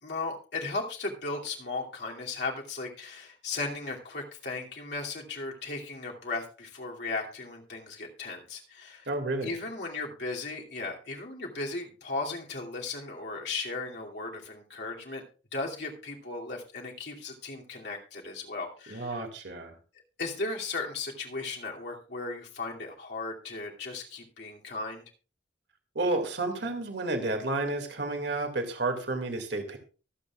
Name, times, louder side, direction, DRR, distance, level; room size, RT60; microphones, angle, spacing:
voice 1, 0.0-9.1 9.4-15.2 15.5-19.2 20.2-25.0, left 3 dB, 65° left, -1 dB, 2.6 m, -36 dB
voice 2, 9.1-9.5 18.9-19.7 26.0-29.8, right 2 dB, 65° right, 5 dB, 2.2 m, -31 dB
24.0 x 8.2 x 2.4 m, 0.35 s
head